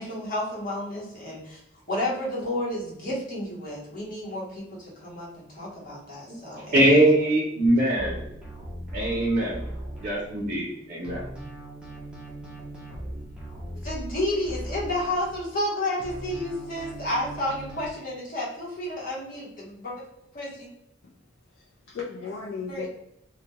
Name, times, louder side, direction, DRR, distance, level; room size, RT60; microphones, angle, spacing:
voice 1, 0.0-1.6 1.9-6.8 13.8-20.0 20.3-20.7 22.7-22.9, left 1 dB, 45° left, -5 dB, 0.9 m, -31 dB
voice 2, 6.7-8.2 8.9-9.6 10.0-11.2, right 1 dB, 45° right, -5 dB, 0.6 m, -22 dB
sound 1, 8.0-10.7 11.0-15.7 16.0-17.8, right 1 dB, 5° right, 0.5 m, -39 dB
voice 3, 21.5-22.9, left 5 dB, 70° left, -4 dB, 0.4 m, -36 dB
2.2 x 2.2 x 2.9 m, 0.82 s
head